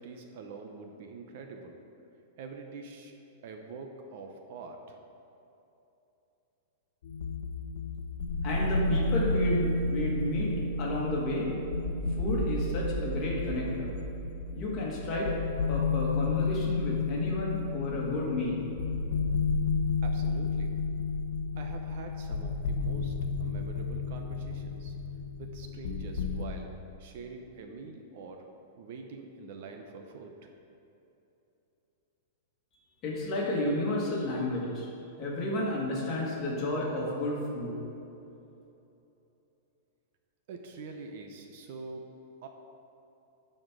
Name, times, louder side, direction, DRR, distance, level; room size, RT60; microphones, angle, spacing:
voice 1, 0.0-1.8 2.4-3.1 3.4-5.0 20.0-20.7 21.6-24.9 25.4-26.7 27.0-28.5 28.8-30.5 40.5-42.0 42.4-42.5, right 4 dB, 45° right, 4 dB, 0.6 m, -45 dB
sound 1, 7.0-26.4, left 3 dB, 70° left, 0.8 m, -31 dB
voice 2, 8.4-10.5 10.8-11.5 12.2-13.9 14.5-15.3 15.7-18.6 33.0-34.9 35.2-37.7, left 1 dB, 25° left, -4 dB, 1.7 m, -31 dB
9.4 x 4.3 x 6.1 m, 2.9 s
supercardioid pair, 175°, 0 cm